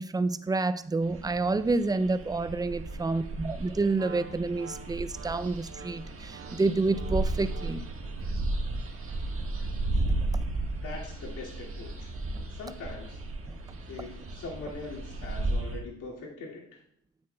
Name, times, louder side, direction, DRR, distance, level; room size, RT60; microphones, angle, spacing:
voice 1, 0.0-7.8 13.5-13.6, right 3 dB, 15° right, 0.4 m, -29 dB
sound 1, 1.0-15.8, right 2 dB, 45° right, 1.5 m, -34 dB
Wind instrument woodwind instrument, 3.9-8.0, right 3 dB, 85° right, 1.6 m, -47 dB
voice 2, 10.8-12.1 12.5-13.2 13.9-16.8, left 3 dB, 80° left, 2.4 m, -41 dB
9.6 x 8.5 x 2.3 m
cardioid pair, 90°, 30 cm